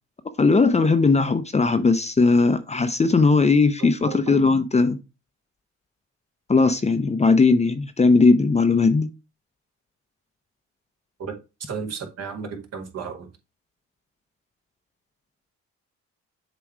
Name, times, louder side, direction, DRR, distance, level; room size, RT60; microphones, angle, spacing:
voice 1, 0.4-5.0 6.5-9.1, left 4 dB, 20° left, 0.6 m, -18 dB
voice 2, 3.8-4.5 11.2-11.3 11.7-13.3, right 6 dB, 55° right, 1.9 m, -34 dB
7.2 x 3.0 x 4.7 m
cardioid pair, 90°, 30 cm